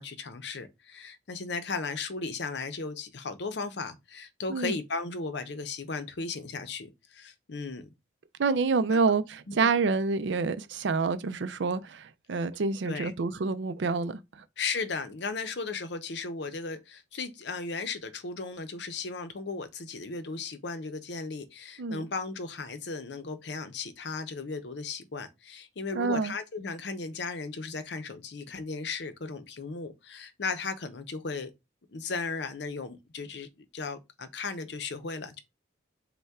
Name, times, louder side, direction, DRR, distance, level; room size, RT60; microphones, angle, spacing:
voice 1, 0.0-7.9 8.9-9.0 9.5-9.7 12.8-13.1 14.6-31.5 31.9-33.5 33.7-35.4, left 4 dB, 65° left, 0.6 m, -36 dB
voice 2, 8.4-14.4 21.8-22.0 25.9-26.3, right 4 dB, 70° right, 0.4 m, -28 dB
5.4 x 2.2 x 3.5 m
head